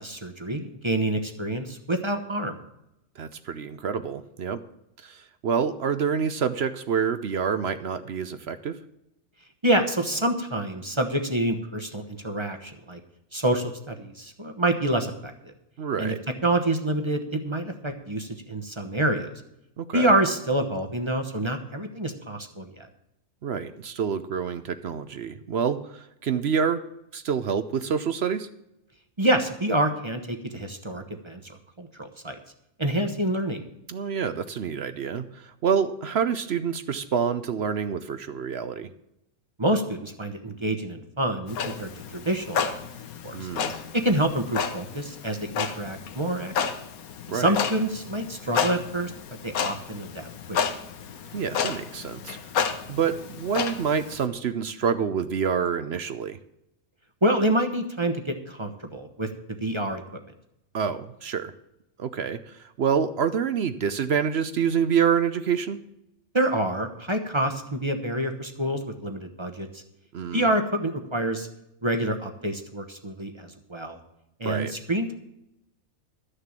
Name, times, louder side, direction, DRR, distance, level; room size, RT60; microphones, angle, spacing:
voice 1, 0.0-2.6 9.6-13.0 13.3-15.5 16.0-16.1 16.4-19.3 19.9-22.9 29.2-31.5 31.8-32.4 32.8-33.6 39.6-42.7 43.2-43.5 43.9-46.5 47.3-49.1 49.4-50.8 57.2-59.3 59.6-60.0 66.3-69.8 70.3-71.5 71.8-74.0 74.4-75.2, right 1 dB, 20° right, 5 dB, 1.0 m, -27 dB
voice 2, 3.2-4.6 5.0-8.8 15.8-16.2 19.8-20.1 23.4-26.8 27.1-28.5 33.9-38.9 43.3-43.7 47.3-47.6 51.3-52.4 52.9-56.4 60.7-61.5 62.0-65.8 70.1-70.5 74.4-74.7, right 7 dB, 55° right, 12 dB, 0.8 m, -27 dB
Clock, 41.5-54.2, left 7 dB, 80° left, 1.4 m, -32 dB
12.5 x 6.7 x 7.4 m, 0.84 s
omnidirectional pair, 1.5 m